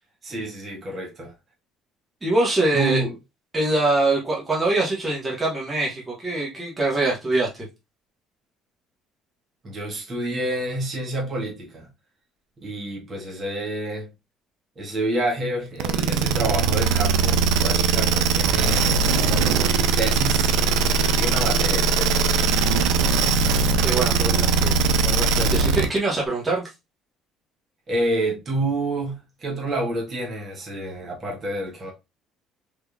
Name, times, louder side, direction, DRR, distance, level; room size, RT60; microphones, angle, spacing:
voice 1, 0.2-1.3 2.7-3.1 9.6-11.9 12.6-14.1 14.8-22.3 27.9-31.9, right 1 dB, 35° right, 1.5 m, -29 dB
voice 2, 2.2-3.0 3.5-7.7 23.8-26.6, right 2 dB, 20° right, 1.5 m, -24 dB
sound 1, 15.8-26.0, right 5 dB, 85° right, 0.5 m, -20 dB
3.7 x 3.1 x 2.4 m
cardioid pair, 115°, 0 cm